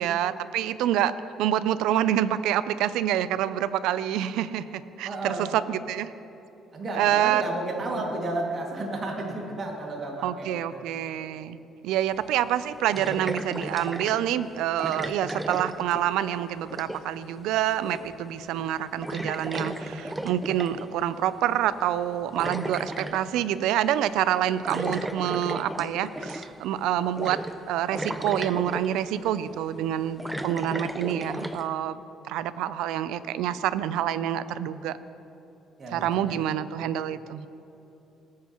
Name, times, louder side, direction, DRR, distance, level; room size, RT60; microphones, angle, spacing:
voice 1, 0.0-6.1 6.9-7.4 10.2-11.6 11.8-27.4 27.7-32.0 32.3-35.0 35.9-37.5, right 11 dB, 85° right, 15 dB, 0.4 m, -27 dB
voice 2, 5.0-5.5 6.7-10.8 35.8-36.4, right 2 dB, 40° right, 0 dB, 2.1 m, -32 dB
sound 1, 11.9-12.0 12.9-14.2 14.8-16.3 16.6-17.2 17.9-18.2 18.5-18.7 19.0-20.9 22.0-23.2 24.7-26.6 27.2-27.6 27.9-29.0 29.8-31.7, right 1 dB, 10° right, 0.6 m, -34 dB
18.5 x 9.5 x 3.0 m, 2.9 s
cardioid pair, 100°, 0 cm